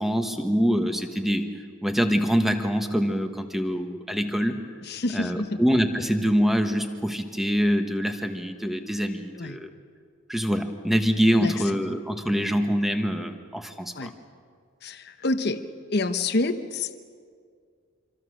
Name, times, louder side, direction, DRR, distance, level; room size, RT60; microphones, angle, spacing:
voice 1, 0.0-4.6 5.1-9.7 10.3-14.1, equal, ahead, 6 dB, 1.3 m, -25 dB
voice 2, 4.9-5.7 9.4-9.6 11.4-11.5 14.0-14.1 14.8-15.6 15.9-17.0, left 2 dB, 50° left, 8 dB, 0.9 m, -27 dB
26.5 x 25.5 x 6.4 m, 2.1 s
head